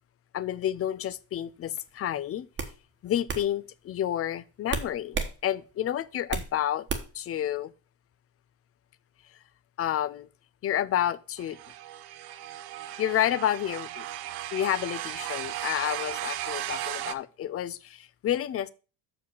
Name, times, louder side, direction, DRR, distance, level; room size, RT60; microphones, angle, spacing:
voice 1, 0.3-2.5 3.0-5.2 5.4-6.9 7.1-7.7 9.8-10.3 10.6-11.6 13.0-14.0 14.5-18.7, left 11 dB, 35° left, 0.5 m, -30 dB
sound 1, 1.8-2.0 2.6-2.8 3.3-3.5 4.7-5.3 5.7-6.5 6.9-7.2, right 5 dB, 25° right, 1.3 m, -32 dB
sound 2, 11.4-17.1, right 13 dB, 65° right, 0.8 m, -36 dB
6.4 x 5.0 x 6.8 m
cardioid pair, 125°, 41 cm